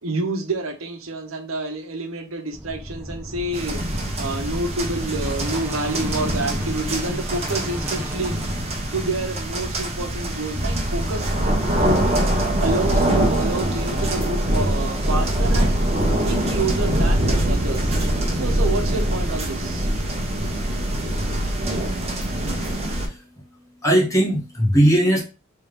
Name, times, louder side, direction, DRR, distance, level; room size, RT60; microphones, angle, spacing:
voice 1, 0.0-3.8 4.2-8.3 8.9-11.3 12.6-15.8 16.2-18.0 18.4-19.9, right 2 dB, 90° right, 0.8 m, -28 dB
sound 1, 2.5-10.1, equal, 10° right, 0.4 m, -35 dB
sound 2, 3.5-23.1, right 1 dB, 30° right, 1.0 m, -23 dB
voice 2, 22.8-23.4 23.8-25.2, right 1 dB, 15° left, 1.6 m, -19 dB
3.5 x 3.2 x 3.3 m
head